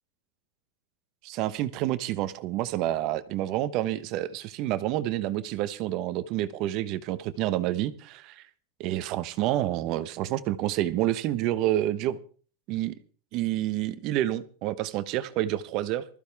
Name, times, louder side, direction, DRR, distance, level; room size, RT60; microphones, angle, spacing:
voice 1, 1.2-8.4 8.8-12.2 12.7-12.9 13.3-16.0, right 14 dB, 40° right, 13 dB, 1.1 m, -28 dB
20.5 x 14.5 x 3.5 m, 0.40 s
supercardioid pair, 165°, 0 cm